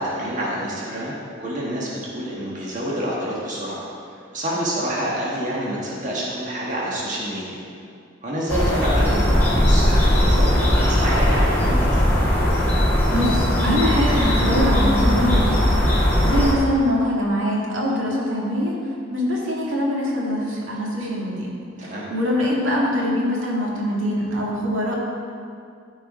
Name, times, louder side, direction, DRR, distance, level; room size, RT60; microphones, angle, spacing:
voice 1, 0.0-7.6 8.2-12.0 21.8-22.0, right 1 dB, 40° right, -5 dB, 1.6 m, -27 dB
sound 1, 8.5-16.5, equal, 10° left, 1.8 m, -19 dB
voice 2, 13.1-18.7 19.1-21.5 21.8-24.9, left 1 dB, 85° right, -4 dB, 2.0 m, -23 dB
13.0 x 4.7 x 4.9 m, 2.3 s
head